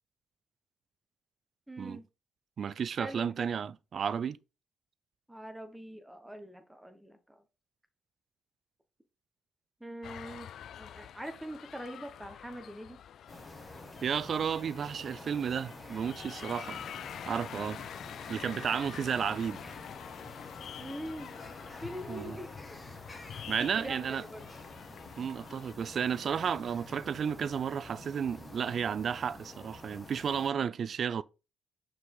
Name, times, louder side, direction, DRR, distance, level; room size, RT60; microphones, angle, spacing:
voice 1, 1.7-2.0 3.0-3.6 5.3-7.4 9.8-10.5 10.8-13.0 20.8-21.4 21.8-22.5 23.8-24.5, right 1 dB, 5° right, 1.2 m, -43 dB
voice 2, 2.6-4.4 14.0-16.8 17.3-17.8 18.3-19.6 22.1-22.4 23.5-24.2 25.2-31.2, right 7 dB, 55° right, 0.4 m, -32 dB
sound 1, 10.0-25.7, left 9 dB, 70° left, 0.3 m, -47 dB
sound 2, 13.3-30.5, left 2 dB, 25° left, 1.7 m, -48 dB
6.0 x 4.8 x 3.8 m
cardioid pair, 90°, 0 cm